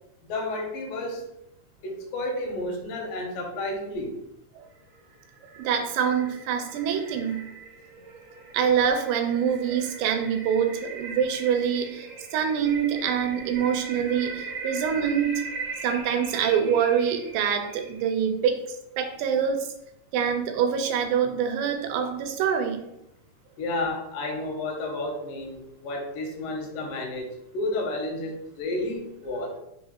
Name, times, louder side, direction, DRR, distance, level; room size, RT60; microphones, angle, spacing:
voice 1, 0.3-1.2 1.8-4.2 23.6-29.6, left 2 dB, 80° left, 2 dB, 2.4 m, -31 dB
sound 1, 4.8-18.2, right 4 dB, 60° right, 1.2 m, -40 dB
voice 2, 5.6-7.4 8.5-15.4 15.8-18.6 19.0-19.7 20.1-22.8, right 7 dB, 85° right, 6 dB, 2.2 m, -25 dB
5.4 x 2.3 x 2.8 m, 0.81 s
omnidirectional pair, 3.9 m